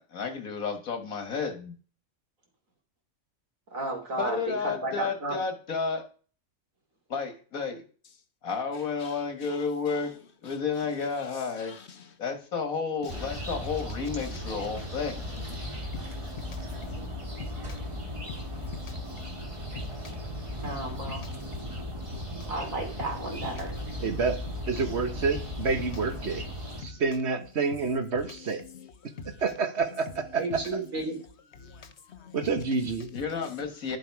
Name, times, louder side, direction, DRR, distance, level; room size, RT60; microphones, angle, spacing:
voice 1, 0.0-1.7 4.2-6.0 7.1-7.8 8.4-10.1 10.4-11.7 12.2-15.4 33.1-34.0, left 5 dB, 85° left, 2.1 m, -31 dB
voice 2, 3.7-4.4 4.6-5.4 20.6-21.2 22.5-23.8 30.4-31.2, right 2 dB, 75° right, 3.3 m, -33 dB
voice 3, 8.7-10.0 10.4-10.6 11.0-12.1 13.0-13.2 14.2-14.4 15.4-21.9 22.1-22.4 23.5-24.1 26.2-26.5 26.8-27.0 28.2-29.4 31.1-31.2 31.5-32.4 33.3-33.5 33.9-34.0, left 5 dB, 55° left, 1.1 m, -47 dB
sound 1, 13.1-26.8, left 1 dB, 20° right, 1.7 m, -37 dB
voice 4, 24.0-26.5 26.8-28.6 29.3-30.6 32.3-33.1, right 4 dB, 55° right, 1.5 m, -28 dB
11.5 x 7.3 x 4.7 m
omnidirectional pair, 1.4 m